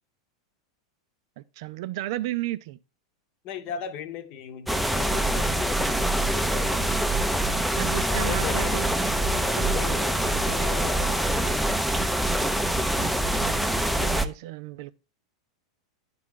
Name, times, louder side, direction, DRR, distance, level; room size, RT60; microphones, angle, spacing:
voice 1, 1.4-2.8 7.6-10.7 13.0-14.9, right 15 dB, 60° right, 0.4 m, -35 dB
voice 2, 3.4-7.0 8.0-8.9 9.4-11.6, left 8 dB, 45° left, 0.9 m, -38 dB
sound 1, 4.7-14.3, right 1 dB, ahead, 0.5 m, -25 dB
9.8 x 3.7 x 3.7 m
hypercardioid pair, 95°, 3 cm